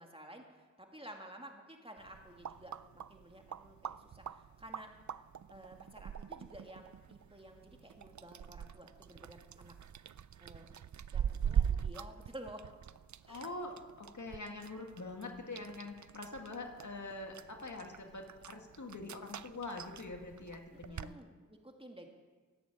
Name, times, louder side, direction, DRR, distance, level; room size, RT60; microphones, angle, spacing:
voice 1, 0.0-2.7 3.1-4.9 5.5-9.7 10.4-10.7 11.1-12.7 13.3-13.5 20.9-22.1, right 1 dB, 20° right, 2 dB, 2.3 m, -52 dB
sound 1, 2.0-21.1, right 8 dB, 70° right, 0.5 m, -42 dB
voice 2, 13.3-21.1, left 2 dB, 70° left, 2 dB, 2.1 m, -44 dB
14.5 x 9.3 x 8.7 m, 1.4 s
wide cardioid pair, 45°, 30 cm